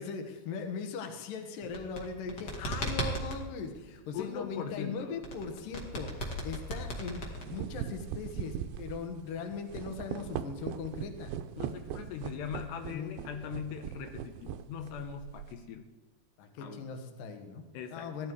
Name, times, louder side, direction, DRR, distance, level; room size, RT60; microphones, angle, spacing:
voice 1, 0.0-11.3 12.9-13.2 16.4-18.3, left 5 dB, 65° left, 5 dB, 2.8 m, -39 dB
sound 1, 1.6-3.4 5.2-7.8, equal, 35° left, 1.9 m, -36 dB
voice 2, 4.1-5.2 11.6-15.9 16.6-17.0 17.7-18.1, left 7 dB, 80° left, 5 dB, 3.0 m, -40 dB
sound 2, 6.5-6.6 7.2-15.6, right 10 dB, 80° right, 2.3 m, -40 dB
16.5 x 12.0 x 4.7 m, 1.2 s
omnidirectional pair, 4.8 m